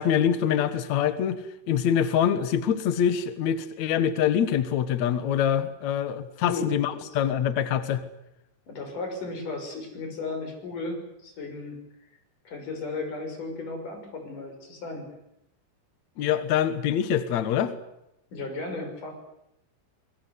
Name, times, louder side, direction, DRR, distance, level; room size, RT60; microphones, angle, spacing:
voice 1, 0.0-1.4 1.7-8.0 16.2-17.7, left 9 dB, 85° left, 12 dB, 1.6 m, -25 dB
voice 2, 8.7-11.8 12.5-15.1 18.3-19.1, left 3 dB, 40° left, 4 dB, 7.3 m, -35 dB
26.5 x 21.5 x 8.2 m, 0.83 s
omnidirectional pair, 5.6 m